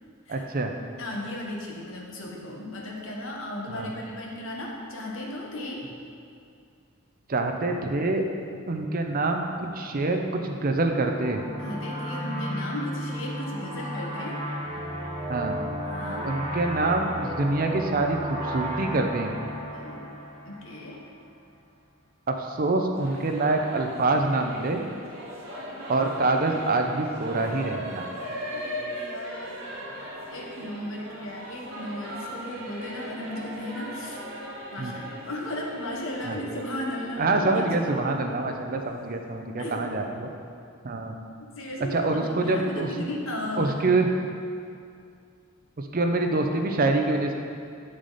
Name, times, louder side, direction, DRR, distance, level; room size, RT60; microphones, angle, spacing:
voice 1, 0.3-0.7 3.7-3.9 7.3-8.3 8.7-11.4 15.3-15.6 16.2-19.3 22.3-24.8 25.9-28.1 34.8-34.9 36.2-36.4 37.2-40.3 40.8-41.1 41.9-42.9 43.6-44.1 45.8-47.3, right 2 dB, 45° right, 4 dB, 0.6 m, -25 dB
voice 2, 1.0-5.9 11.6-14.4 15.8-16.3 19.7-20.1 20.4-21.0 28.5-29.7 30.3-34.2 34.7-37.9 39.6-39.8 41.5-43.9, left 1 dB, 70° left, -1 dB, 1.2 m, -36 dB
sound 1, 10.6-21.0, equal, 30° right, 1.2 m, -34 dB
Singing / Musical instrument, 22.9-39.3, equal, 75° right, 1.6 m, -39 dB
8.2 x 6.4 x 4.1 m, 2.4 s
head